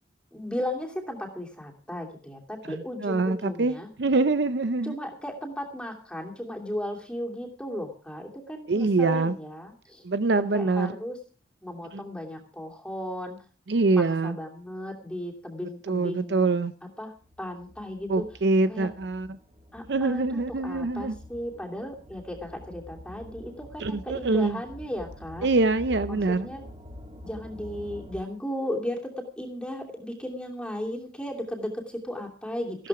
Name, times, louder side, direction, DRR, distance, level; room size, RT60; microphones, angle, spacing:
voice 1, 0.3-3.9 4.8-10.0 10.4-11.2 11.6-13.4 13.9-16.5 17.0-17.1 17.4-18.2 18.7-18.9 19.7-25.5 26.1-26.6 27.2-32.9, left 1 dB, 5° left, 2.8 m, -35 dB
voice 2, 2.7-4.9 8.7-9.4 10.0-10.9 11.9-12.0 13.7-14.4 15.9-16.7 18.1-19.4 19.9-21.2 23.8-24.6 25.4-26.5, right 3 dB, 70° right, 0.6 m, -24 dB
sound 1, 17.2-28.2, left 1 dB, 35° right, 3.1 m, -46 dB
15.0 x 12.5 x 4.9 m
head